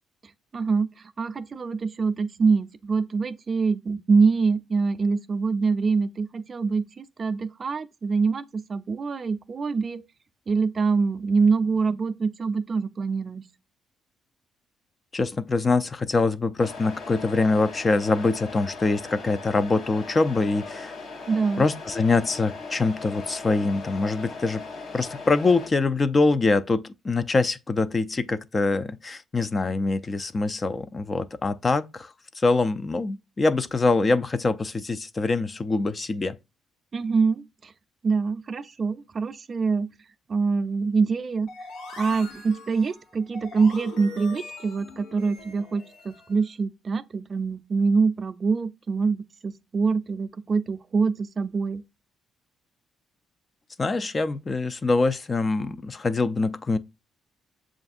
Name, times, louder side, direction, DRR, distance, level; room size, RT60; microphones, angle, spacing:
voice 1, 0.5-0.9 1.2-10.0 10.5-13.4 21.3-21.6 36.9-37.7 38.0-39.9 40.3-41.5 42.0-51.8, right 4 dB, 40° right, 0.4 m, -25 dB
voice 2, 15.1-20.9 21.6-24.6 24.9-36.4 53.8-56.8, left 3 dB, 30° left, 0.4 m, -24 dB
Truck, 16.6-25.7, left 4 dB, 60° left, 0.9 m, -39 dB
sound 1, 41.5-46.4, left 3 dB, 85° left, 1.1 m, -42 dB
6.9 x 2.5 x 2.4 m
cardioid pair, 90°, 0 cm